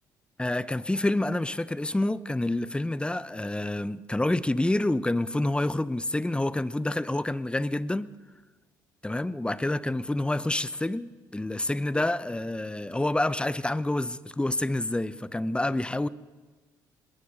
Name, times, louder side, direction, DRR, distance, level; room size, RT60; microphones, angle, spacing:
voice 1, 0.4-8.1 9.0-16.1, left 1 dB, 10° left, 1.0 m, -28 dB
25.0 x 21.5 x 5.2 m
hypercardioid pair, 50°, 10 cm